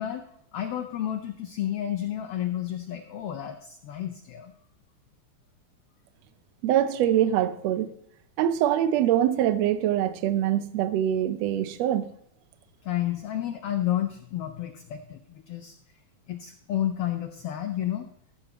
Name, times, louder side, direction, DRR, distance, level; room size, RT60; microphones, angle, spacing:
voice 1, 0.0-4.5 12.8-15.7 16.3-18.1, left 11 dB, 80° left, 1.3 m, -31 dB
voice 2, 6.6-7.9 8.4-12.1, right 11 dB, 75° right, 1.7 m, -24 dB
14.5 x 7.8 x 2.9 m
omnidirectional pair, 3.4 m